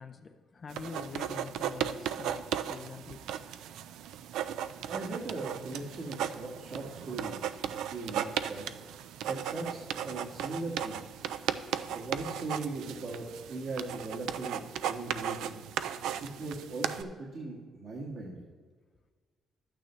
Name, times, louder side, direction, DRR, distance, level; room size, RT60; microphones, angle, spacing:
voice 1, 0.0-3.3, left 5 dB, 40° left, 0.5 m, -45 dB
sound 1, 0.7-17.0, right 9 dB, 85° right, 0.3 m, -36 dB
voice 2, 4.9-11.3 11.9-15.6 16.2-18.4, right 2 dB, 65° right, 1.7 m, -39 dB
12.0 x 8.9 x 3.1 m
cardioid pair, 90°, 0 cm